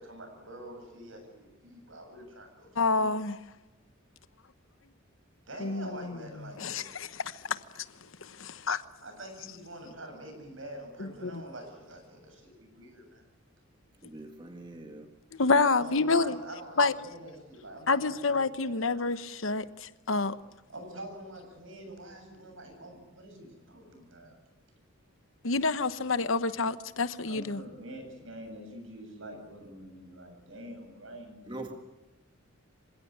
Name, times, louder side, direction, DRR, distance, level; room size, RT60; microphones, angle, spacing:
voice 1, 0.0-3.1 5.5-6.8 9.0-13.2 15.8-19.0 20.7-24.4 27.2-31.7, right 1 dB, 70° right, 5 dB, 7.9 m, -46 dB
voice 2, 2.8-3.4 5.6-6.2 6.6-7.8 8.2-8.8 11.0-11.4 15.3-16.4 16.8-16.9 17.9-20.4 25.4-27.6, left 3 dB, 70° left, 13 dB, 1.1 m, -28 dB
voice 3, 14.0-15.1 31.5-31.7, right 2 dB, 20° right, 4 dB, 1.8 m, -42 dB
26.5 x 17.0 x 9.9 m, 1.1 s
head